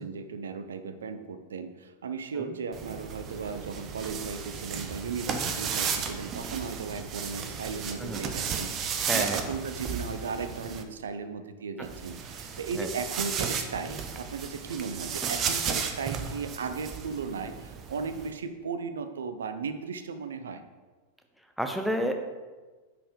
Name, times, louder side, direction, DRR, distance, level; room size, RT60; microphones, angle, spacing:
voice 1, 0.0-20.6, right 5 dB, 65° right, 10 dB, 0.6 m, -36 dB
sound 1, 2.7-10.8 11.8-18.3, right 6 dB, 30° right, 0.7 m, -34 dB
voice 2, 9.1-9.4 12.7-12.9 21.6-22.2, equal, ahead, 4 dB, 0.8 m, -31 dB
8.5 x 4.9 x 5.1 m, 1.3 s
figure-of-eight pair, 90°, 0 cm